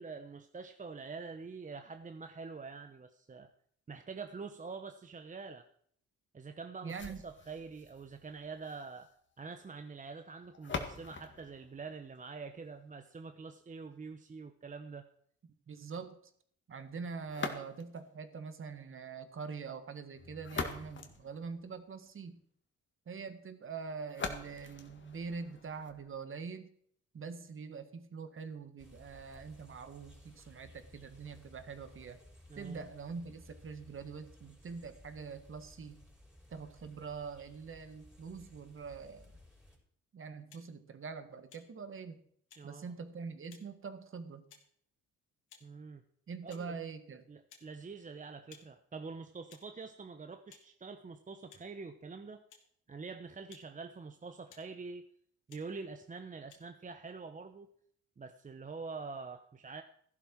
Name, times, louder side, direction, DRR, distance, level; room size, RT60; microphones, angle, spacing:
voice 1, 0.0-3.5 3.9-5.7 6.3-9.1 9.4-15.1 32.5-32.9 42.6-42.9 45.6-46.0 46.4-46.7 47.3-52.4 52.9-55.1 55.5-57.7 58.2-59.8, right 4 dB, 25° right, 8 dB, 0.9 m, -46 dB
voice 2, 6.8-7.2 15.7-16.2 16.7-22.4 23.0-26.7 27.1-32.2 32.5-36.0 36.5-39.3 40.1-42.2 42.6-44.4 46.3-47.2, right 5 dB, 45° right, 9 dB, 1.7 m, -44 dB
sound 1, 6.9-12.9 17.3-18.1 20.1-22.1 24.1-26.1, left 4 dB, 40° left, 2.0 m, -44 dB
sound 2, 28.8-39.8, left 1 dB, ahead, 5.3 m, -58 dB
sound 3, 40.5-40.7 41.5-41.7 42.5-42.6 43.5-43.7 44.5-44.6 45.5-45.7 46.5-46.7 47.5-47.7 48.5-48.7 49.5-49.7 50.5-50.7 51.5-51.6 52.5-52.7 53.5-53.7 54.5-54.7 55.5-55.6 56.5-56.6, left 7 dB, 80° left, 2.7 m, -58 dB
14.5 x 11.5 x 4.6 m, 0.63 s
cardioid pair, 90°, 30 cm